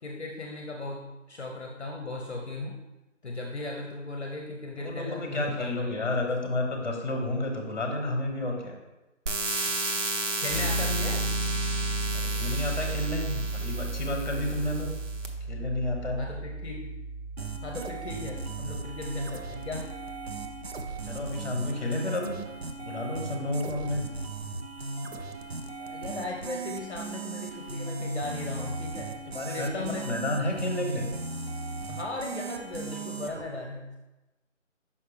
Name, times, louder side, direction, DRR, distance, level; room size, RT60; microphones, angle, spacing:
voice 1, 0.0-2.8 3.2-6.3 10.4-11.3 16.2-17.0 17.6-19.9 25.8-29.1 29.4-30.2 31.9-34.0, left 2 dB, 60° left, 1 dB, 0.8 m, -37 dB
voice 2, 4.8-8.8 12.1-14.9 15.5-16.3 21.0-22.4 22.8-24.0 29.3-31.1, left 1 dB, 35° left, 2 dB, 1.1 m, -31 dB
sound 1, 9.3-15.3, right 2 dB, 70° right, 1.0 m, -33 dB
Piano, 10.5-21.3, right 2 dB, 10° right, 2.2 m, -34 dB
sound 2, 17.4-33.4, right 3 dB, 55° right, 0.6 m, -37 dB
5.7 x 5.6 x 3.3 m, 1.0 s
hypercardioid pair, 180°, 38 cm